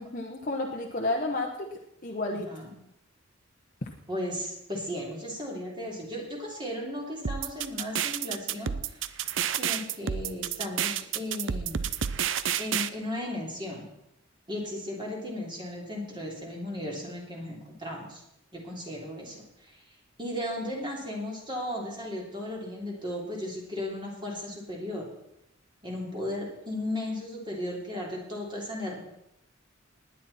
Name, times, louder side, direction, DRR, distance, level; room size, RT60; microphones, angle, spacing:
voice 1, 0.0-1.7 2.0-2.5, left 2 dB, 40° left, 0 dB, 1.1 m, -31 dB
voice 2, 4.1-9.1 9.5-11.9 12.6-13.9 14.5-18.2 18.5-19.8 20.2-25.1 25.8-29.0, left 1 dB, 25° right, -2 dB, 3.1 m, -36 dB
sound 1, 7.2-12.9, right 8 dB, 65° right, 0.6 m, -29 dB
19.0 x 9.9 x 4.3 m, 0.82 s
head